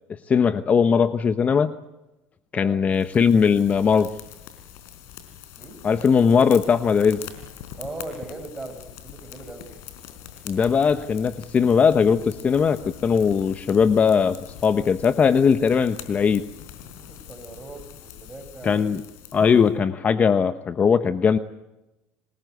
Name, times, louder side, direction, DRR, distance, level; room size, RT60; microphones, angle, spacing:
voice 1, 0.3-1.7 2.5-4.1 5.8-7.2 10.4-16.4 18.6-19.0 19.3-21.4, left 6 dB, 30° left, 11 dB, 1.0 m, -19 dB
sound 1, 2.9-19.7, left 10 dB, 75° left, 4.2 m, -43 dB
voice 2, 7.8-9.7 16.8-19.0, right 2 dB, 15° right, 4 dB, 6.6 m, -39 dB
27.5 x 20.0 x 8.0 m, 0.98 s
supercardioid pair, 105°, 5 cm